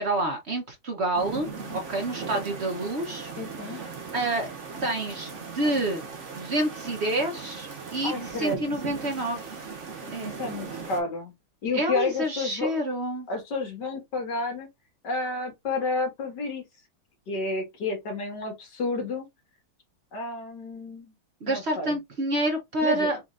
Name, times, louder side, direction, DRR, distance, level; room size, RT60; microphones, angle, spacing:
voice 1, 0.0-3.3 3.7-3.8 4.1-4.5 4.8-6.0 6.4-9.6 10.1-10.3 11.7-13.3 21.4-23.2, right 1 dB, 65° right, 0.6 m, -28 dB
sound 1, 1.1-11.0, right 5 dB, 40° right, 1.2 m, -38 dB
voice 2, 3.4-3.8 8.0-8.6 10.2-11.3 11.6-12.8 13.3-14.7 15.0-16.6 17.3-19.3 20.1-21.1 21.5-22.0 22.8-23.2, left 3 dB, 55° left, 2.2 m, -30 dB
4.2 x 4.1 x 2.4 m
omnidirectional pair, 2.3 m